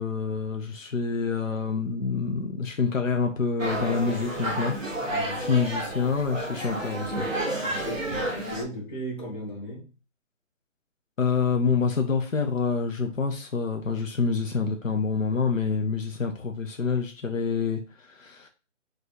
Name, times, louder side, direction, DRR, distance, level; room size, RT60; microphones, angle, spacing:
voice 1, 0.0-4.7 5.4-7.3 11.2-18.5, left 5 dB, 85° left, 1.0 m, -27 dB
sound 1, 3.6-8.6, right 1 dB, 5° right, 0.6 m, -31 dB
voice 2, 5.1-5.5 7.6-9.9, equal, 40° left, 1.8 m, -36 dB
4.4 x 3.2 x 3.2 m
hypercardioid pair, 165°, 38 cm